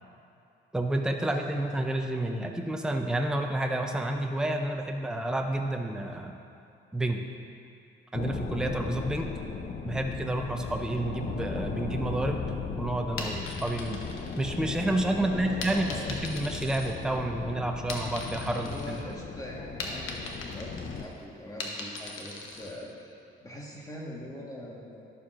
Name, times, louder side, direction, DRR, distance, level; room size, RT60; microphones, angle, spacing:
voice 1, 0.7-6.4 6.9-7.2 8.1-9.3 9.8-12.4 12.8-14.0 14.4-19.0, right 1 dB, 5° right, 3 dB, 0.5 m, -30 dB
sound 1, 8.1-21.0, left 5 dB, 45° left, 0.6 m, -37 dB
sound 2, 13.0-15.0 15.6-17.4 17.7-19.0 19.4-22.8, left 3 dB, 90° left, 0.9 m, -40 dB
voice 2, 15.1-16.1 18.6-25.1, left 1 dB, 15° left, -3 dB, 1.5 m, -43 dB
11.0 x 6.9 x 2.5 m, 2.5 s
cardioid pair, 90°, 20 cm